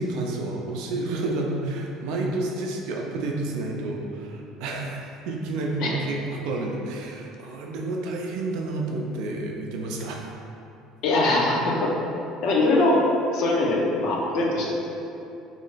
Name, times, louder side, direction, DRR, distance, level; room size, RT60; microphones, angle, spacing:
voice 1, 0.0-10.3, right 2 dB, 75° right, 0 dB, 0.4 m, -30 dB
voice 2, 11.0-11.9 12.4-13.0 13.3-14.9, left 2 dB, 65° left, -2 dB, 0.6 m, -22 dB
3.1 x 2.0 x 3.9 m, 2.8 s
cardioid pair, 110°, 0 cm